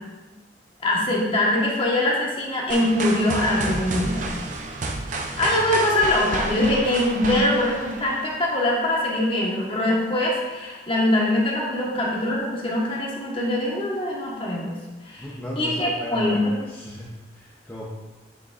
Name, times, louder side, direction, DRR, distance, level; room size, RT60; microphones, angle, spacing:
voice 1, 0.8-4.2 5.4-14.7 15.1-15.2 15.6-16.5, left 1 dB, 30° left, -3 dB, 1.3 m, -23 dB
sound 1, 2.7-8.6, right 2 dB, 40° right, 0.6 m, -31 dB
voice 2, 5.3-5.9 15.2-17.9, equal, 10° left, -7 dB, 0.7 m, -36 dB
7.3 x 6.8 x 2.5 m, 1.2 s
head